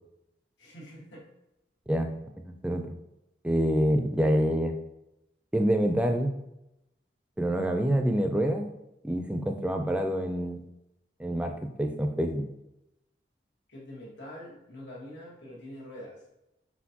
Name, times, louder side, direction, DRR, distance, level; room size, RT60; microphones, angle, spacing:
voice 1, 0.6-1.2 13.7-16.2, left 1 dB, 90° left, -5 dB, 1.4 m, -44 dB
voice 2, 2.5-2.9 3.4-4.8 5.5-6.4 7.4-8.7 9.0-10.6 11.2-12.4, equal, 5° right, 5 dB, 0.4 m, -26 dB
4.4 x 4.2 x 2.8 m, 0.90 s
head